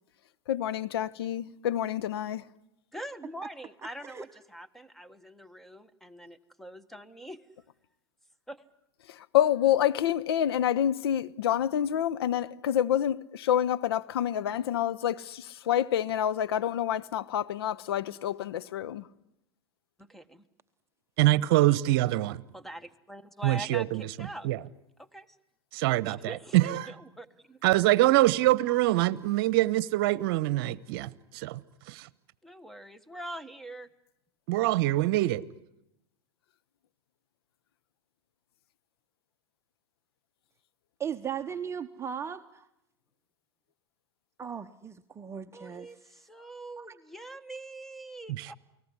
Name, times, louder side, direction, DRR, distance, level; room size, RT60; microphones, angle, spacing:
voice 1, 0.5-2.4 9.1-19.1, left 10 dB, 70° left, 1.0 m, -28 dB
voice 2, 2.9-7.5 8.5-8.7 20.0-20.4 22.5-24.5 25.0-25.4 26.0-27.6 32.4-33.9 45.5-48.6, right 1 dB, ahead, 1.6 m, -44 dB
voice 3, 21.2-22.4 23.4-24.0 24.4-24.6 25.7-26.9 27.6-31.6 31.9-32.1 34.5-35.4 48.3-48.5, right 16 dB, 60° right, 1.0 m, -24 dB
voice 4, 41.0-42.7 44.4-45.9 46.8-47.0, right 8 dB, 20° right, 0.9 m, -37 dB
29.0 x 19.0 x 9.8 m
hypercardioid pair, 95°, 13 cm